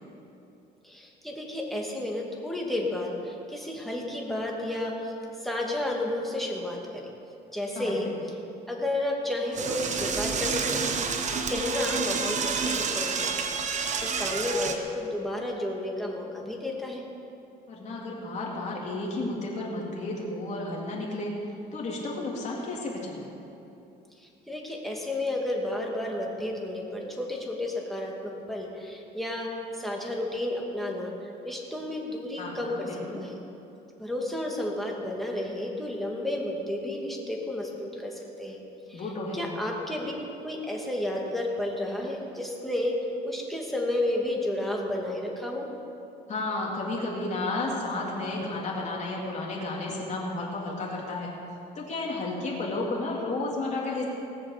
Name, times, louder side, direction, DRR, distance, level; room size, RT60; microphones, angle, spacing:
voice 1, 0.8-5.1 5.4-7.1 7.5-8.1 8.7-10.9 11.5-13.4 14.0-17.0 24.2-29.5 29.8-31.1 31.4-32.9 33.2-33.3 34.0-38.6 38.9-39.1 39.3-40.1 40.4-43.0 43.2-45.7, left 1 dB, ahead, -2 dB, 2.5 m, -31 dB
voice 2, 7.8-8.1 17.7-21.3 21.7-23.2 32.4-33.2 38.9-39.5 46.3-51.3 51.8-54.1, left 2 dB, 45° left, -3 dB, 3.5 m, -32 dB
Door / Toilet flush, 9.5-14.8, right 5 dB, 45° right, 1.3 m, -29 dB
19.0 x 7.2 x 6.9 m, 2.8 s
cardioid pair, 110°, 17 cm